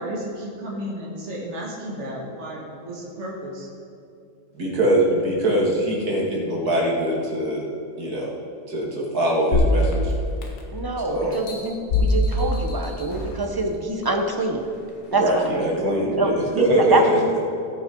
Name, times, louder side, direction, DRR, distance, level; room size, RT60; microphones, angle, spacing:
voice 1, 0.0-3.7, equal, 45° right, -4 dB, 1.9 m, -33 dB
voice 2, 4.5-7.6 8.0-8.3 8.7-10.1 11.1-11.4 15.1-17.2, right 1 dB, 70° right, -3 dB, 2.4 m, -22 dB
sound 1, 9.5-10.8 11.3-13.4 14.0-14.1, left 1 dB, 75° left, 1.8 m, -23 dB
voice 3, 10.7-14.6 15.1-17.4, right 2 dB, 30° right, 3 dB, 0.4 m, -25 dB
17.0 x 6.1 x 4.5 m, 2.6 s
omnidirectional pair, 1.7 m